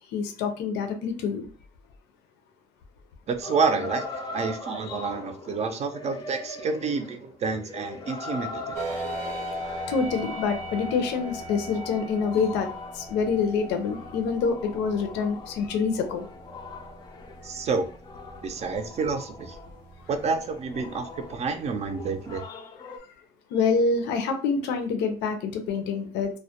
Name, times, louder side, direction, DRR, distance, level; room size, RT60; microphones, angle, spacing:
voice 1, 0.1-1.4 4.9-5.0 9.9-12.7 12.9-16.2 23.5-26.3, left 5 dB, 90° left, 7 dB, 0.5 m, -26 dB
voice 2, 3.3-8.8 17.4-17.9 18.4-19.6 20.1-22.4, right 4 dB, 40° right, 7 dB, 0.4 m, -29 dB
sound 1, 3.4-19.9 20.2-23.0, left 3 dB, 25° left, 0.3 m, -42 dB
sound 2, 8.7-22.4, equal, 80° right, 0.7 m, -39 dB
2.2 x 2.1 x 2.7 m, 0.38 s
cardioid pair, 110°, 17 cm